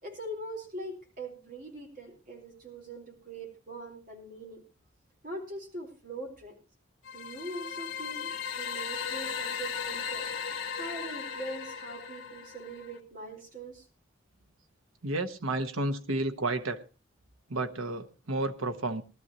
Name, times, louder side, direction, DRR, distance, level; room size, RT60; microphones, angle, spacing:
voice 1, 0.0-4.6 5.2-6.5 7.1-10.3 10.7-13.9, right 1 dB, 40° right, 3.9 m, -42 dB
sound 1, 7.0-13.0, left 7 dB, 60° left, 1.4 m, -37 dB
voice 2, 15.0-16.8 17.5-19.0, right 2 dB, 85° right, 1.1 m, -31 dB
19.0 x 12.5 x 2.9 m
head